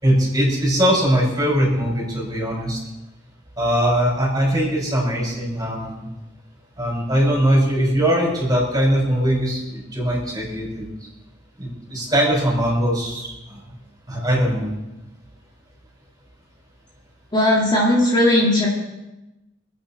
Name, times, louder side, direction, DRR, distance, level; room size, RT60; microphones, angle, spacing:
voice 1, 0.0-2.8 3.6-6.1 6.8-10.9 11.6-13.6 14.1-14.7, equal, 20° right, -3 dB, 6.0 m, -21 dB
voice 2, 17.3-18.7, left 1 dB, 25° left, -5 dB, 2.6 m, -17 dB
27.0 x 9.3 x 4.5 m, 1.0 s
head